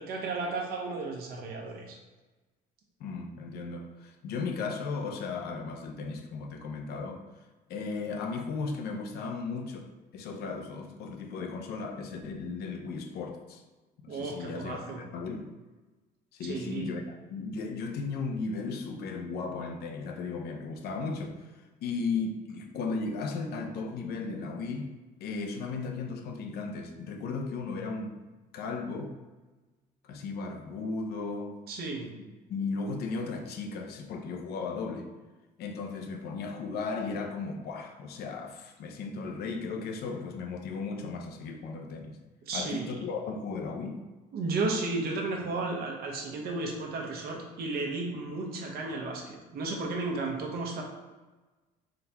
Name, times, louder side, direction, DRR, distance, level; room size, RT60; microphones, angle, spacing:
voice 1, 0.0-2.0 14.1-15.0 16.4-16.9 31.7-32.1 42.5-43.0 44.3-50.8, right 3 dB, 65° right, 1 dB, 0.9 m, -33 dB
voice 2, 3.0-7.2 7.7-13.6 14.0-15.5 16.3-24.9 25.2-28.2 28.5-29.2 30.0-31.6 32.5-35.1 35.6-42.2 42.5-44.0, left 4 dB, 70° left, 4 dB, 0.6 m, -36 dB
3.8 x 2.9 x 3.4 m, 1.2 s
cardioid pair, 110°, 17 cm